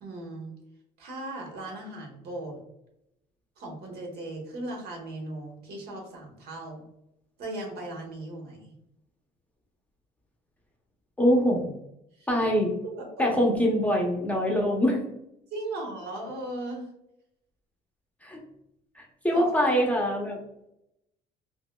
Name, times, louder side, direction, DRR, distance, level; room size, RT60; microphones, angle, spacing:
voice 1, 0.0-0.5 1.0-2.6 3.6-6.8 7.4-8.7 12.2-12.5 12.8-13.3 15.5-16.8 19.3-19.5, right 1 dB, 70° right, 0 dB, 1.2 m, -37 dB
voice 2, 11.2-11.7 12.3-12.7 13.2-15.0 18.2-18.4 19.0-20.4, equal, 10° left, -1 dB, 0.7 m, -24 dB
5.0 x 2.0 x 2.2 m, 0.82 s
cardioid pair, 110°, 17 cm